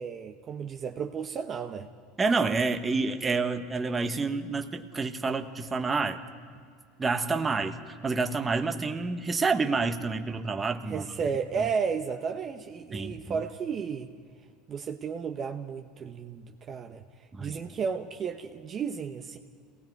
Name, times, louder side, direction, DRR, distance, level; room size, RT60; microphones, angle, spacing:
voice 1, 0.0-1.9 10.9-14.1 14.7-17.0 17.4-19.4, right 6 dB, 40° right, 4 dB, 1.0 m, -33 dB
voice 2, 2.2-6.2 7.0-11.1 11.6-11.7 12.9-13.4 17.3-17.6, right 4 dB, 20° right, 6 dB, 1.3 m, -28 dB
28.5 x 19.5 x 4.7 m, 2.1 s
supercardioid pair, 100°, 0 cm